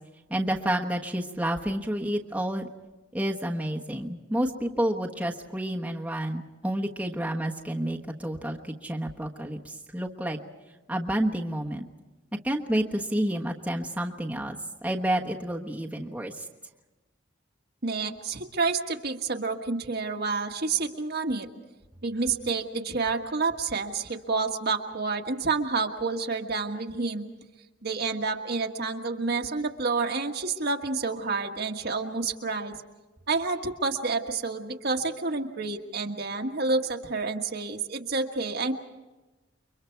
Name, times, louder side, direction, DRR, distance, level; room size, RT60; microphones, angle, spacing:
voice 1, 0.3-2.7 3.1-10.4 10.9-11.9 12.4-16.4, right 1 dB, 5° right, -1 dB, 1.3 m, -29 dB
voice 2, 17.8-21.5 22.0-27.2 27.8-32.8 33.3-38.7, right 4 dB, 55° right, 3 dB, 1.6 m, -29 dB
29.5 x 23.5 x 4.6 m, 1.1 s
head